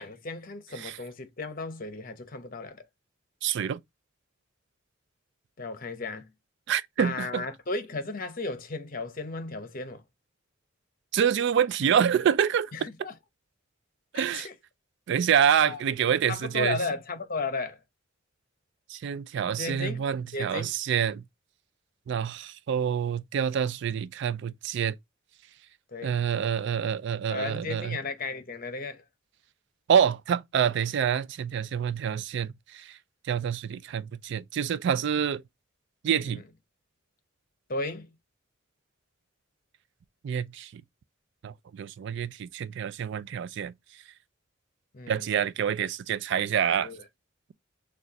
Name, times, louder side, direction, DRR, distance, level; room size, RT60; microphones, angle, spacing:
voice 1, 0.0-2.8 5.6-6.3 7.0-10.0 12.7-13.1 14.1-14.5 15.6-15.8 16.3-17.8 19.6-20.0 20.3-20.7 25.9-26.2 27.3-29.0 36.2-36.4 37.7-38.1 44.9-45.3 46.8-47.0, left 3 dB, 45° left, 0.9 m, -35 dB
voice 2, 3.4-3.8 6.7-7.5 11.1-12.9 14.1-14.5 15.1-16.8 18.9-21.2 22.1-25.0 26.0-28.0 29.9-33.0 33.2-35.4 36.0-36.4 40.2-40.8 41.4-43.7 45.1-46.9, right 8 dB, 60° right, 0.3 m, -27 dB
6.3 x 2.4 x 2.9 m
head